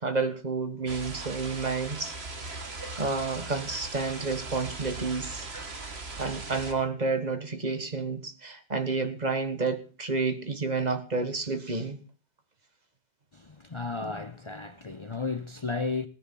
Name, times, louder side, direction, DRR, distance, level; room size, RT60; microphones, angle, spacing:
voice 1, 0.0-2.1 3.0-5.5 6.2-12.0, right 4 dB, 45° right, 1.5 m, -30 dB
sound 1, 0.9-6.7, right 3 dB, 80° right, 2.2 m, -39 dB
voice 2, 13.3-16.1, left 4 dB, 30° left, 0.8 m, -33 dB
17.5 x 10.0 x 5.5 m
omnidirectional pair, 1.1 m